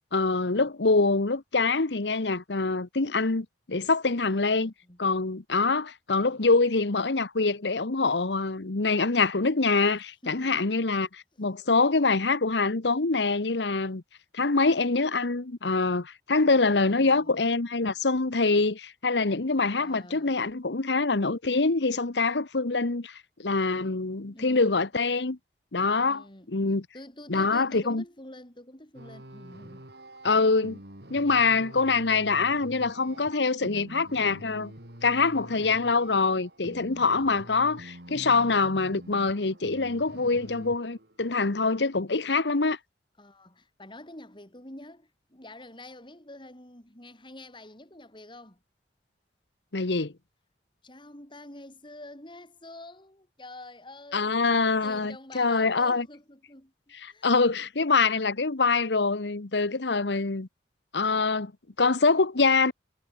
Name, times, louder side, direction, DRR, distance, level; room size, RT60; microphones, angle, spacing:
voice 1, 0.1-4.7 5.0-14.0 14.3-25.4 25.7-26.8 27.3-28.0 30.2-30.8 31.1-34.7 35.0-42.8 49.7-50.1 54.1-56.1 57.0-60.5 60.9-61.5 61.8-62.7, left 3 dB, 80° left, 1.2 m, -25 dB
voice 2, 4.1-5.0 10.2-10.7 11.3-11.5 16.4-17.4 19.8-20.5 24.3-24.9 25.8-26.5 26.9-29.9 43.2-48.6 50.8-56.7 57.1-57.6, left 1 dB, 30° left, 5.3 m, -47 dB
sound 1, 28.9-41.3, right 1 dB, 65° right, 4.6 m, -46 dB
head